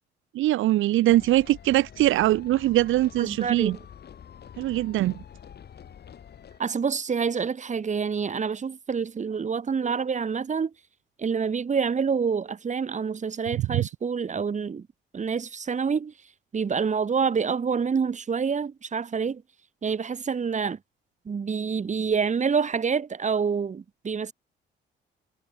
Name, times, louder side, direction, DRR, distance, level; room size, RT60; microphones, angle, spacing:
voice 1, 0.3-3.8 4.6-5.2 13.6-13.9, right 15 dB, 85° right, 1.3 m, -22 dB
sound 1, 1.1-6.6, left 8 dB, 55° left, 3.5 m, -46 dB
voice 2, 3.2-3.8 6.6-10.7 11.2-14.8 15.1-16.1 16.5-19.4 19.8-20.8 21.3-24.3, right 6 dB, 35° right, 2.2 m, -27 dB
cardioid pair, 90°, 20 cm